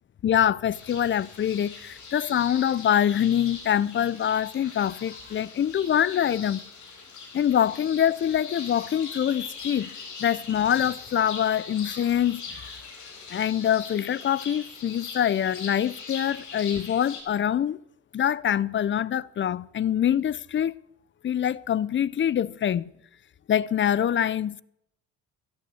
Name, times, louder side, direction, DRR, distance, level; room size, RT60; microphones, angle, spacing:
voice 1, 0.2-6.6 7.3-9.9 10.2-12.7 13.3-17.8 18.1-20.7 21.2-22.9 23.5-24.6, left 10 dB, 35° left, 0.5 m, -25 dB
sound 1, 0.7-17.2, left 5 dB, 55° left, 4.5 m, -41 dB
14.0 x 9.6 x 7.7 m
supercardioid pair, 85°, 35 cm